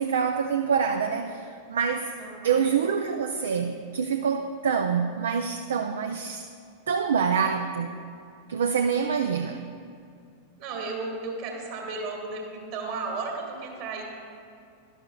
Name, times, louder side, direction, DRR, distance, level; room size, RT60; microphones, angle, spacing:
voice 1, 0.0-2.1 2.4-6.5 6.9-8.0 8.5-9.6, right 6 dB, 65° right, 0.4 m, -26 dB
voice 2, 2.2-2.7 10.6-14.0, right 3 dB, 45° right, 1.9 m, -34 dB
11.5 x 11.5 x 2.3 m
figure-of-eight pair, 90°, 0 cm